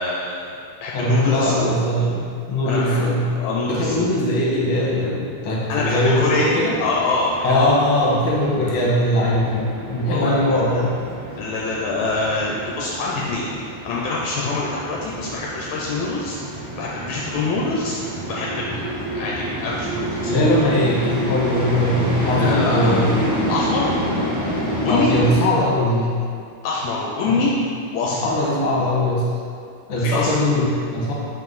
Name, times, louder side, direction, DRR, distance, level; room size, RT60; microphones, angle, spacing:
voice 1, 0.0-1.5 2.6-4.1 5.7-7.7 10.0-10.6 11.4-13.5 13.9-20.3 22.1-22.9 23.5-23.9 24.8-25.1 26.6-27.5 27.9-28.3 29.9-30.3, left 3 dB, 80° left, -4 dB, 1.9 m, -25 dB
voice 2, 0.9-2.2 2.5-3.3 3.7-6.7 7.4-10.9 20.2-23.1 24.8-26.1 27.3-27.4 28.2-29.2 29.9-31.1, left 1 dB, 55° left, -6 dB, 2.1 m, -20 dB
sound 1, 5.7-25.4, right 1 dB, 45° right, 1.9 m, -28 dB
5.6 x 4.7 x 4.0 m, 2.4 s
omnidirectional pair, 3.3 m